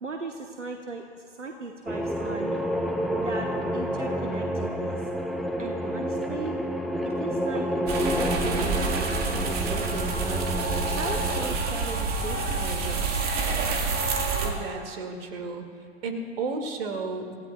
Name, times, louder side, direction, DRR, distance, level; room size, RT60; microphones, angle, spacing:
voice 1, 0.0-2.6 3.1-5.0 5.6-6.6 7.0-7.7 8.2-10.5 10.9-13.2, right 3 dB, 85° right, 3 dB, 1.1 m, -37 dB
sound 1, 1.9-11.6, equal, ahead, 0.5 m, -29 dB
sound 2, 7.9-14.5, right 4 dB, 25° right, 1.9 m, -28 dB
voice 2, 14.4-15.6 16.0-17.3, right 3 dB, 55° right, 4 dB, 2.2 m, -33 dB
28.5 x 16.0 x 2.3 m, 2.1 s
figure-of-eight pair, 100°, 35 cm